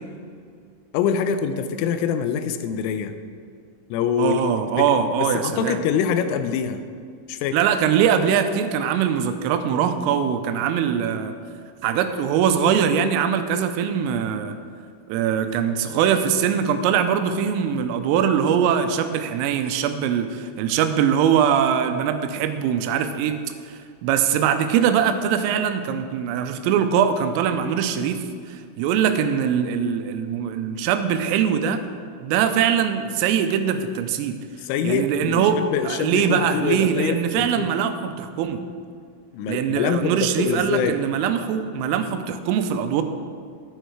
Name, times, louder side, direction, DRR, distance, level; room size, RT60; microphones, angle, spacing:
voice 1, 0.9-3.2 3.9-6.8 7.3-7.6 34.6-37.7 39.3-41.0, left 7 dB, 85° left, 9 dB, 3.1 m, -25 dB
voice 2, 4.2-5.8 7.5-11.3 11.8-14.5 15.1-23.4 23.7-28.2 28.5-31.8 32.2-34.4 34.8-38.6 39.5-43.0, right 8 dB, 90° right, 8 dB, 3.3 m, -22 dB
11.0 x 9.0 x 4.6 m, 2.2 s
omnidirectional pair, 5.8 m